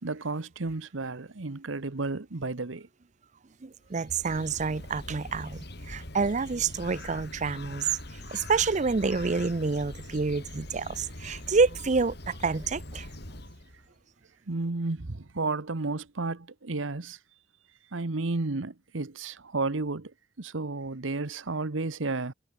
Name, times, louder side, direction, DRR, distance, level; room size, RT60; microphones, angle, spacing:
voice 1, 0.0-2.9 14.5-17.2 17.9-20.1 20.4-22.3, right 3 dB, 80° right, 1.1 m, -32 dB
voice 2, 3.6-7.9 8.3-13.1, right 4 dB, 40° right, 0.5 m, -28 dB
Bird, 3.8-13.9, left 1 dB, 55° left, 6.3 m, -43 dB
head